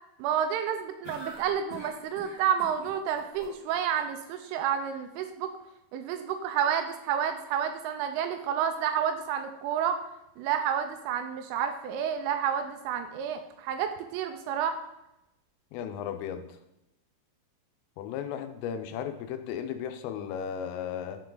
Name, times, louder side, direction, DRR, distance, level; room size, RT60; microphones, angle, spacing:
voice 1, 0.2-5.5 5.9-10.0 10.4-14.8, right 8 dB, 85° right, 7 dB, 3.0 m, -30 dB
sound 1, 1.0-4.0, equal, 55° left, 1.6 m, -45 dB
voice 2, 15.7-16.5 18.0-21.2, left 8 dB, 85° left, 8 dB, 3.2 m, -35 dB
10.5 x 4.5 x 3.9 m, 0.87 s
omnidirectional pair, 5.9 m